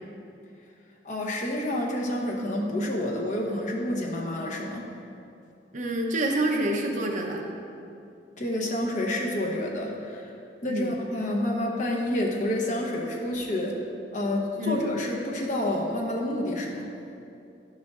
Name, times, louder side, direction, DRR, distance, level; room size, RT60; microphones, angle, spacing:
voice 1, 1.0-4.9 8.4-10.3 10.6-13.8 14.1-16.9, left 1 dB, 45° left, -1 dB, 0.9 m, -29 dB
voice 2, 5.7-7.4 10.7-10.9 14.6-14.7, right 1 dB, 45° right, 1 dB, 0.7 m, -27 dB
11.0 x 6.3 x 2.5 m, 2.6 s
head